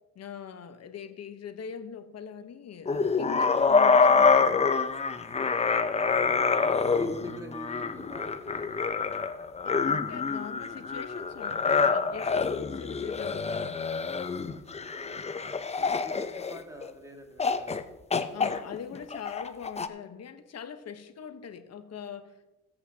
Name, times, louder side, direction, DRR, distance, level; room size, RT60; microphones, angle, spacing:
voice 1, 0.1-4.7 9.6-13.7 18.3-22.5, left 7 dB, 55° left, 1.1 m, -42 dB
sound 1, 2.9-16.9 17.4-17.8 18.1-19.9, left 5 dB, 20° left, 0.6 m, -26 dB
voice 2, 6.1-9.1 15.0-15.1 15.4-17.8 18.1-18.4, right 1 dB, 10° right, 2.0 m, -46 dB
16.5 x 8.2 x 2.8 m
cardioid pair, 90°, 30 cm